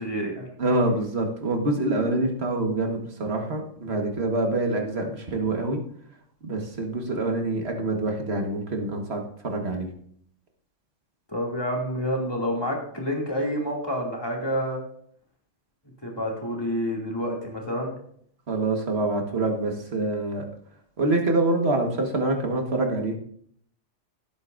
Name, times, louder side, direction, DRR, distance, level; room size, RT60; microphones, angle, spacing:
voice 1, 0.0-0.4 11.3-14.8 16.0-17.9, equal, 20° left, -2 dB, 2.5 m, -28 dB
voice 2, 0.6-5.8 6.4-9.9 18.5-20.5 21.0-23.1, right 2 dB, 55° right, 2 dB, 1.9 m, -26 dB
16.5 x 8.1 x 2.6 m, 0.62 s
omnidirectional pair, 1.3 m